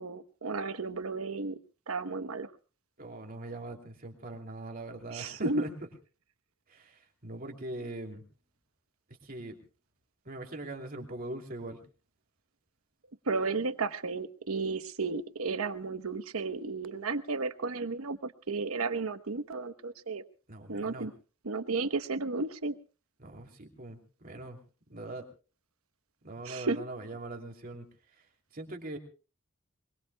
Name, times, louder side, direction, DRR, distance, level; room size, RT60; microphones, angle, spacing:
voice 1, 0.0-1.6 1.9-2.5 5.1-5.6 13.3-20.2 20.7-21.1 21.4-22.8 26.4-26.8, right 3 dB, 85° right, 11 dB, 1.0 m, -33 dB
voice 2, 3.0-5.7 6.7-8.2 9.1-9.6 10.2-11.8 20.5-21.1 23.2-24.6 24.9-25.3 26.2-27.9 28.1-28.2 28.5-29.0, right 2 dB, 40° right, 2 dB, 2.9 m, -41 dB
23.5 x 22.0 x 2.3 m, 0.34 s
head